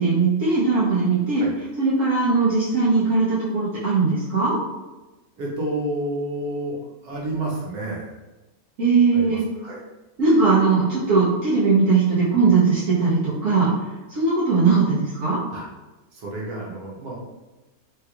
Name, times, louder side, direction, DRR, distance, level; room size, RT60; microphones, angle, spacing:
voice 1, 0.0-1.4 1.8-4.6 8.8-9.5 10.2-13.7 14.1-15.4, right 4 dB, 65° right, -9 dB, 1.0 m, -19 dB
voice 2, 5.4-6.8 7.0-8.1 9.1-9.8 15.5-15.7 16.1-17.2, right 1 dB, 85° right, -3 dB, 1.3 m, -30 dB
3.2 x 3.1 x 2.3 m, 1.1 s
omnidirectional pair, 1.6 m